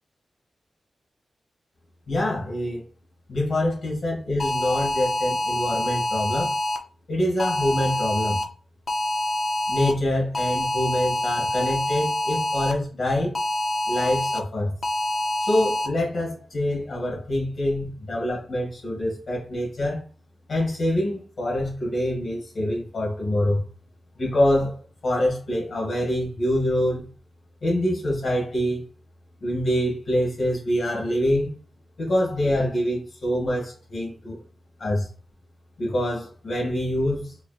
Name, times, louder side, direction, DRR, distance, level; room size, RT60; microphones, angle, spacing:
voice 1, 2.1-2.8 3.3-6.5 7.1-8.4 9.7-13.4 13.9-14.7 15.4-20.0 20.5-23.6 24.2-27.1 27.6-28.8 29.4-31.5 32.0-34.4 34.8-35.1 35.8-37.4, left 1 dB, 65° left, 1.9 m, -25 dB
sound 1, 4.4-6.8 7.4-8.4 8.9-9.9 10.3-12.7 13.3-14.4 14.8-15.9, left 1 dB, 45° left, 0.6 m, -26 dB
4.9 x 3.5 x 2.4 m
wide cardioid pair, 180°, 0 cm